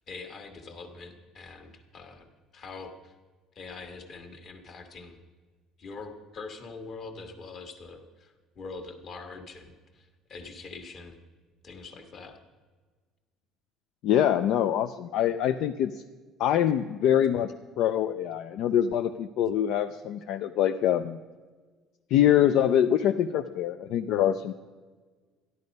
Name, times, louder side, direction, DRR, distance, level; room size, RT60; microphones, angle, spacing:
voice 1, 0.1-2.3 2.5-3.1 3.5-5.2 5.8-11.2 11.6-12.4, left 4 dB, 30° left, 6 dB, 1.4 m, -43 dB
voice 2, 14.0-16.0 16.4-21.2 22.1-24.5, left 10 dB, 55° left, 9 dB, 0.4 m, -24 dB
14.0 x 11.0 x 5.2 m, 1.4 s
cardioid pair, 180°, 0 cm